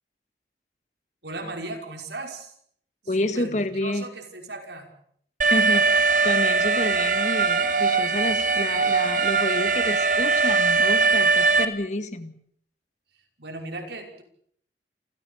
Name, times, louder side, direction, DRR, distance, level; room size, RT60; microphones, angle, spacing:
voice 1, 1.2-2.5 3.0-4.9 13.4-14.2, right 2 dB, 75° right, 4 dB, 5.7 m, -37 dB
voice 2, 3.1-4.1 5.5-12.4, left 1 dB, 40° left, 10 dB, 1.9 m, -29 dB
Alarm, 5.4-11.7, right 4 dB, 45° right, 1.9 m, -21 dB
28.0 x 16.0 x 8.6 m, 0.67 s
head